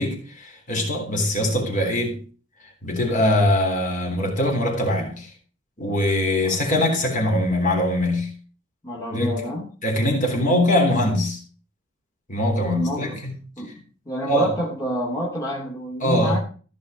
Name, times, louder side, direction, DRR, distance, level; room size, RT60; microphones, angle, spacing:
voice 1, 0.0-2.2 2.8-5.3 5.8-8.3 9.1-9.3 9.8-11.4 12.3-13.3 14.3-14.5 16.0-16.4, left 1 dB, 45° left, 3.5 m, -22 dB
voice 2, 8.8-9.7 12.7-13.2 13.6-13.7 14.0-16.4, equal, 20° left, 2.8 m, -28 dB
15.0 x 5.5 x 5.1 m
head